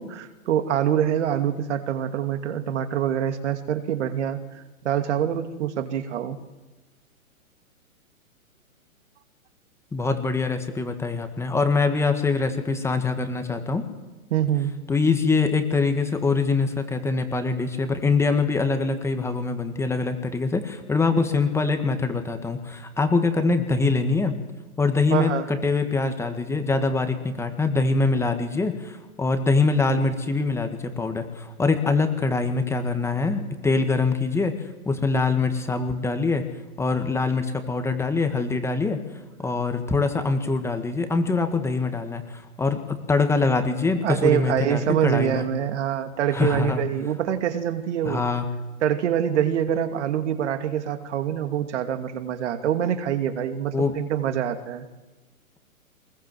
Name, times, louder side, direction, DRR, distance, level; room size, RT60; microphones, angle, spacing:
voice 1, 0.0-4.4 4.8-6.4 14.3-14.7 21.3-21.4 25.1-25.5 44.0-48.2 48.8-54.9, right 9 dB, 50° right, 7 dB, 2.7 m, -25 dB
voice 2, 9.9-13.9 14.9-24.4 24.8-36.5 36.8-39.0 39.4-45.5 46.3-46.8 48.1-48.5 53.7-53.9, left 3 dB, 5° left, 7 dB, 1.7 m, -24 dB
23.5 x 21.0 x 7.8 m, 1.1 s
hypercardioid pair, 140°, 43 cm